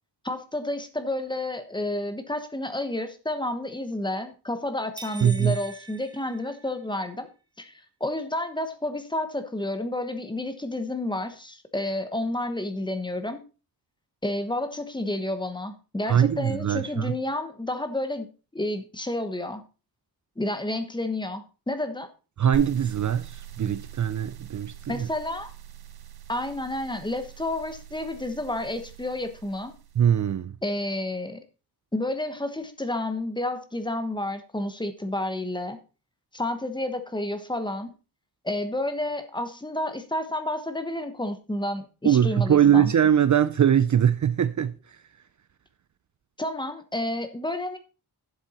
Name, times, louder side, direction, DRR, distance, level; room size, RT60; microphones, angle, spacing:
voice 1, 0.2-7.3 7.6-13.4 14.2-18.3 18.5-19.6 20.4-22.1 24.9-25.5 26.3-29.7 30.6-31.4 31.9-35.8 36.3-37.9 38.4-42.9 46.4-47.8, left 1 dB, 10° left, 1.1 m, -30 dB
sound 1, 5.0-7.1, right 3 dB, 10° right, 0.8 m, -43 dB
voice 2, 5.2-5.6 16.1-17.1 22.4-25.1 30.0-30.5 42.0-45.0, right 9 dB, 50° right, 0.5 m, -22 dB
sound 2, 22.5-30.3, right 6 dB, 70° right, 1.1 m, -43 dB
11.5 x 7.3 x 4.2 m
wide cardioid pair, 160°, 39 cm